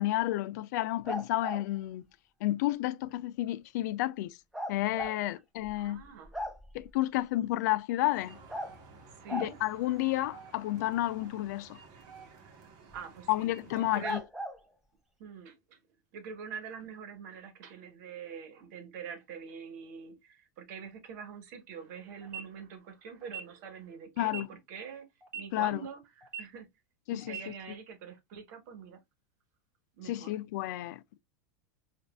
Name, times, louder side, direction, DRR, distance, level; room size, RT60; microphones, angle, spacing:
voice 1, 0.0-2.1 2.4-4.4 4.7-6.0 6.7-8.4 9.3-11.8 13.3-14.2 24.2-24.5 25.5-25.8 27.1-27.4 30.0-31.2, left 16 dB, 70° left, 0.3 m, -31 dB
sound 1, 1.0-1.6 4.5-5.1 5.6-5.7 6.0-6.8 8.5-8.7 9.3-9.5 12.9-13.0 14.0-14.6, equal, 5° right, 0.8 m, -37 dB
voice 2, 5.8-6.3 9.2-9.5 12.4-12.5 12.9-14.2 15.2-15.8 16.1-25.1 25.3-26.7 27.1-29.0 30.0-30.3, right 6 dB, 65° right, 1.2 m, -45 dB
sound 2, 8.1-14.2, right 5 dB, 45° right, 1.2 m, -53 dB
sound 3, 22.2-22.4 23.2-23.4 24.2-24.4 25.2-25.4 26.2-26.4 27.2-27.4, right 7 dB, 20° right, 1.6 m, -40 dB
5.0 x 2.6 x 2.3 m
supercardioid pair, 130°, 10 cm